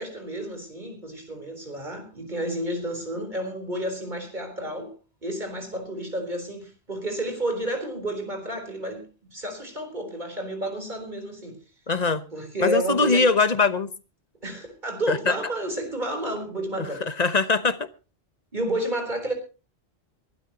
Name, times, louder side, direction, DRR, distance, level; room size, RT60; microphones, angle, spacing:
voice 1, 0.0-4.9 5.2-9.0 9.3-11.6 12.3-13.3 14.4-17.1 18.5-19.3, right 1 dB, 45° right, 4.2 m, -31 dB
voice 2, 11.9-12.2 12.6-13.9 15.1-15.3 17.1-17.8, left 4 dB, 40° left, 1.1 m, -21 dB
22.5 x 12.5 x 2.9 m
omnidirectional pair, 1.1 m